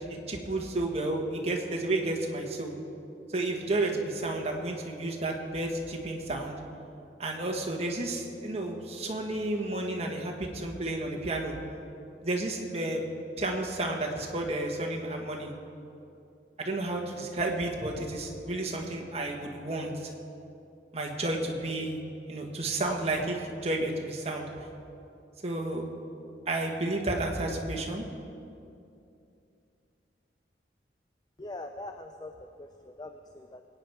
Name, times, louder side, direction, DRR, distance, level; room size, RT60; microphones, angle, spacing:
voice 1, 0.1-2.7 3.3-6.6 7.2-11.5 12.2-13.0 13.4-15.5 16.6-20.1 20.9-22.0 22.3-24.5 25.4-25.8 26.5-28.0, right 2 dB, 35° right, 1 dB, 1.6 m, -31 dB
voice 2, 31.4-33.6, left 2 dB, 25° left, 6 dB, 0.5 m, -43 dB
22.0 x 9.4 x 4.7 m, 2.6 s
head